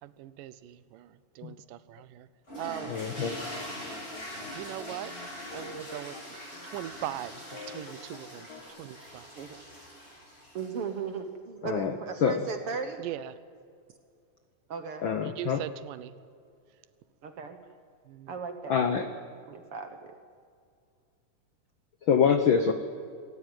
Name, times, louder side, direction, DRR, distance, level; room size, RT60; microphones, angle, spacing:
voice 1, 0.0-2.3 2.6-3.0 4.5-5.1 5.5-6.2 6.6-8.5 8.8-9.3 13.0-13.3 15.2-16.1 18.1-18.3, right 13 dB, 85° right, 16 dB, 2.4 m, -40 dB
sound 1, 2.5-10.9, equal, 15° left, 6.8 m, -43 dB
sound 2, 2.7-6.2 6.5-6.7 7.0-8.6, left 4 dB, 35° left, 1.8 m, -46 dB
voice 2, 2.9-3.4 11.6-11.9 12.2-12.4 15.0-15.6 18.7-19.0 22.1-22.7, left 7 dB, 90° left, 8 dB, 1.0 m, -25 dB
voice 3, 10.5-13.0 14.7-15.1 17.2-17.6 18.3-19.2 19.5-20.1, right 5 dB, 60° right, 7 dB, 1.7 m, -37 dB
26.5 x 14.0 x 9.2 m, 2.3 s
omnidirectional pair, 3.7 m